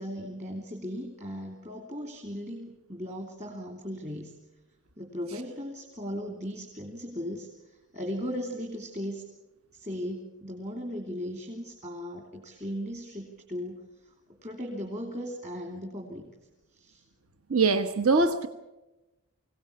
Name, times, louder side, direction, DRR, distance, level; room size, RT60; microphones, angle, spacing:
voice 1, 0.0-4.3 5.0-9.2 9.7-14.1 14.4-16.3 16.7-17.0, equal, 30° right, 2 dB, 2.9 m, -37 dB
voice 2, 17.5-18.5, right 3 dB, 70° right, 9 dB, 1.2 m, -23 dB
24.5 x 17.5 x 8.6 m, 1.0 s
head